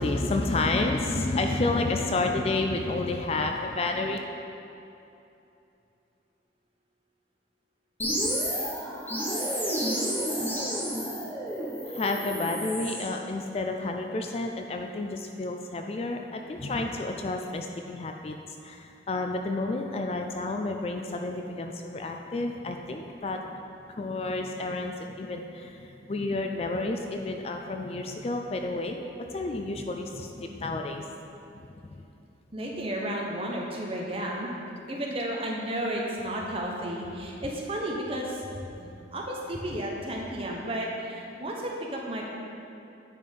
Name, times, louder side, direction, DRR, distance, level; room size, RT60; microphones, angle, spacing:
voice 1, 0.0-4.2 11.9-18.4 18.6-23.6 24.0-31.0 31.5-31.7, left 2 dB, 35° left, 3 dB, 0.3 m, -30 dB
sound 1, 8.0-13.1, equal, 10° left, 1.1 m, -30 dB
voice 2, 32.5-34.5 34.9-38.3 38.8-42.2, right 1 dB, 30° right, -1 dB, 1.0 m, -33 dB
9.3 x 4.3 x 5.3 m, 2.8 s
head